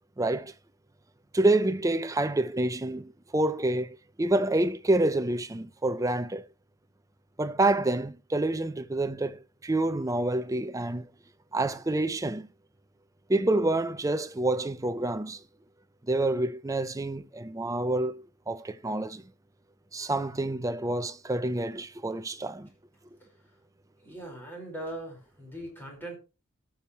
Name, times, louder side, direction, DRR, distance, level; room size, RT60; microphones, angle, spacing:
voice 1, 0.2-0.5 1.3-6.5 7.4-11.1 11.5-12.5 13.3-15.4 16.1-19.2 19.9-22.7, right 2 dB, 15° right, 0.5 m, -28 dB
voice 2, 24.0-26.2, right 1 dB, 10° left, 5.0 m, -40 dB
17.5 x 7.1 x 3.1 m
head